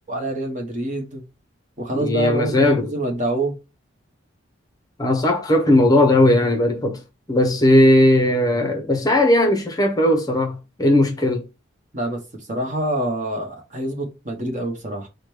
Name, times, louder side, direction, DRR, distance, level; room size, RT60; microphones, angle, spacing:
voice 1, 0.1-1.2 1.8-3.6 11.9-15.1, right 1 dB, 35° right, 1.0 m, -26 dB
voice 2, 1.9-2.9 5.0-7.0 7.3-11.4, left 1 dB, 20° left, 0.6 m, -17 dB
4.8 x 2.2 x 4.7 m
head